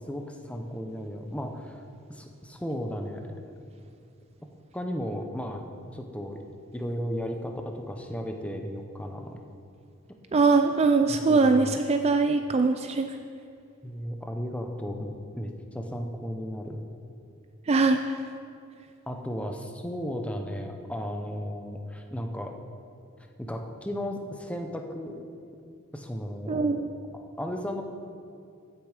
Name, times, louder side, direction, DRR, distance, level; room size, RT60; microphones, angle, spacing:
voice 1, 0.1-1.8 2.1-3.4 4.7-5.6 5.9-6.4 6.7-9.4 11.1-11.8 13.8-16.8 19.1-22.6 23.4-25.2 25.9-26.8 27.4-27.8, equal, 5° left, 3 dB, 0.8 m, -35 dB
voice 2, 10.3-13.1 17.7-18.0 26.5-26.8, right 4 dB, 30° right, 7 dB, 0.4 m, -22 dB
14.5 x 6.9 x 5.0 m, 2.4 s
head